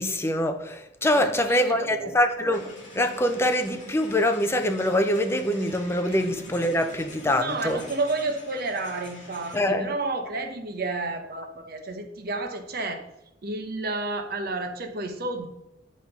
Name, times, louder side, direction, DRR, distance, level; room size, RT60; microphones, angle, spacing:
voice 1, 0.0-2.7 3.0-7.8 9.5-9.9, left 1 dB, 15° left, 7 dB, 0.5 m, -24 dB
voice 2, 1.1-2.1 6.1-6.2 7.2-13.0 13.4-15.5, right 2 dB, 55° right, 6 dB, 1.0 m, -31 dB
sound 1, 2.5-9.7, left 1 dB, 40° left, 2.4 m, -45 dB
8.7 x 3.6 x 5.8 m, 0.87 s
head